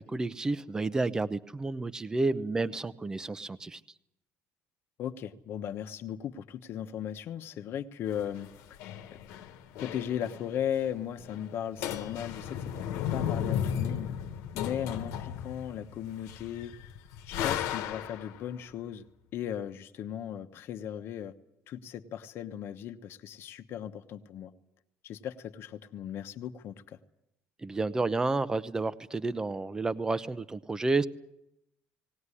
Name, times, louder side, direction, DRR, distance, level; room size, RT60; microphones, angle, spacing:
voice 1, 0.0-3.8 27.6-31.1, right 3 dB, 15° right, 15 dB, 0.7 m, -30 dB
voice 2, 5.0-8.8 9.7-14.1 14.5-16.7 17.3-19.0 19.3-21.3 21.7-24.5 25.0-27.0, left 9 dB, 55° left, 7 dB, 1.1 m, -37 dB
sound 1, 8.1-10.6 10.9-11.0 11.2-11.5 11.8-18.4, left 9 dB, 85° left, 1.4 m, -35 dB
19.0 x 18.0 x 9.8 m, 0.86 s
cardioid pair, 145°, 5 cm